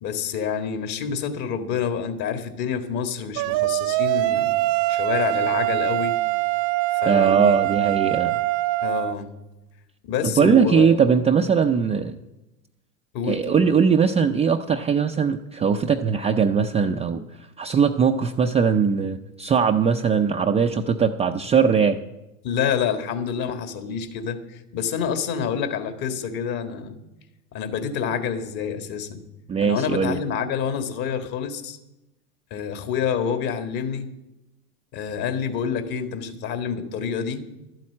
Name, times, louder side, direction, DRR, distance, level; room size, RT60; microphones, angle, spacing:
voice 1, 0.0-4.5 4.9-6.2 6.9-7.6 8.8-9.3 10.0-11.0 13.1-13.6 22.4-27.0 27.5-29.2 29.6-31.8 32.5-34.1 34.9-37.4, left 7 dB, 50° left, 8 dB, 1.9 m, -28 dB
sound 1, 3.4-9.1, right 17 dB, 50° right, 0.8 m, -23 dB
voice 2, 7.1-8.4 10.4-12.1 13.3-17.2 17.6-22.0 29.5-30.2, right 6 dB, 15° right, 4 dB, 0.4 m, -20 dB
12.0 x 7.8 x 8.4 m, 0.98 s
hypercardioid pair, 95°, 47 cm